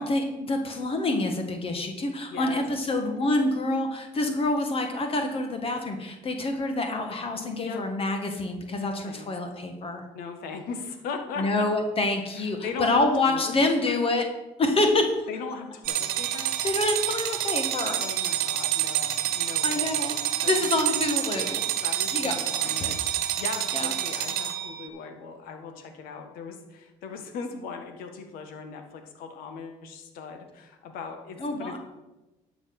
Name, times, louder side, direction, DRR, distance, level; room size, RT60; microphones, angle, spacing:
voice 1, 0.0-10.0 11.4-14.3 14.6-15.3 16.6-18.0 19.6-20.2 20.5-21.6 22.1-22.9 23.7-23.9 31.4-31.8, left 2 dB, 40° left, 5 dB, 1.6 m, -27 dB
voice 2, 2.3-2.6 7.6-7.8 8.8-9.3 10.1-11.7 12.3-13.5 13.9-14.1 15.3-16.6 18.0-20.1 20.4-20.7 21.8-31.8, left 5 dB, 80° left, 6 dB, 1.7 m, -39 dB
sound 1, 15.8-24.9, right 12 dB, 85° right, 1.2 m, -28 dB
11.5 x 5.9 x 6.1 m, 1.0 s
supercardioid pair, 90°, 15 cm